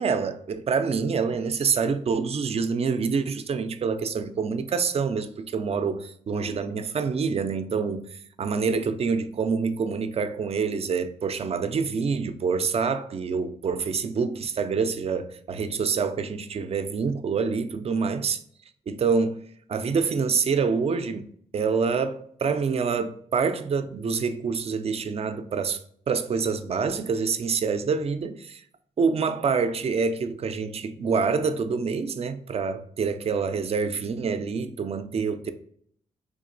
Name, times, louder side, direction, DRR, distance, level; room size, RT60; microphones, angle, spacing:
voice 1, 0.0-18.4 18.9-19.4 19.7-25.8 26.1-28.6 29.0-35.5, right 5 dB, 45° right, 0.4 m, -26 dB
3.7 x 2.8 x 2.5 m
supercardioid pair, 55°, 14 cm